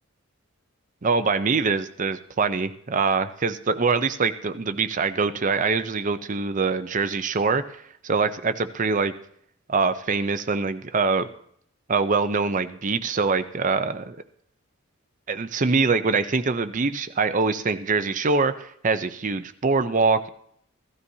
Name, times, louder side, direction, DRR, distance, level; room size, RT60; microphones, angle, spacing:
voice 1, 1.0-9.1 9.7-11.3 11.9-14.2 15.3-20.3, right 4 dB, 35° right, 10 dB, 0.6 m, -24 dB
15.5 x 12.5 x 2.8 m, 0.67 s
head